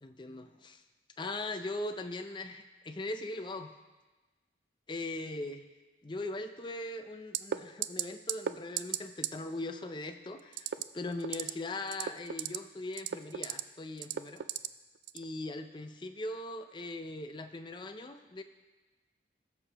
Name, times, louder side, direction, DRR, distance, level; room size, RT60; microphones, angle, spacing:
voice 1, 0.0-0.8 1.2-3.7 4.9-5.6 6.0-14.4 15.1-18.4, left 2 dB, 25° left, 7 dB, 0.5 m, -40 dB
sound 1, 7.3-7.6 7.8-8.0 8.3-8.5 8.8-9.0 9.2-9.3 10.5-10.8 11.2-11.5 11.9-12.6 12.9-13.6 14.0-14.7 15.1-15.2, right 10 dB, 75° right, 0.3 m, -33 dB
18.5 x 6.6 x 3.0 m, 1.2 s
head